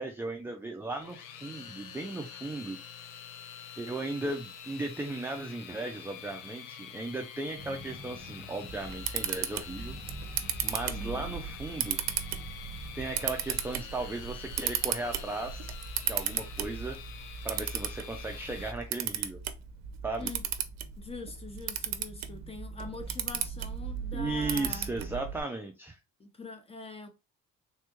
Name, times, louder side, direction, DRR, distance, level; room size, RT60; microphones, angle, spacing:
voice 1, 0.0-2.8 3.8-10.0 10.6-12.0 12.9-15.6 16.1-17.0 17.4-19.4 20.0-20.3 24.1-26.0, right 2 dB, 10° right, 0.3 m, -36 dB
sound 1, 0.9-18.7, left 8 dB, 80° left, 0.6 m, -46 dB
sound 2, 7.6-13.7, equal, 35° right, 1.1 m, -48 dB
Camera, 8.7-25.4, right 9 dB, 60° right, 0.5 m, -36 dB
voice 2, 10.8-11.3 20.2-20.4 21.0-24.9 26.2-27.1, left 3 dB, 20° left, 0.8 m, -43 dB
3.5 x 2.2 x 2.9 m
cardioid pair, 115°, 30 cm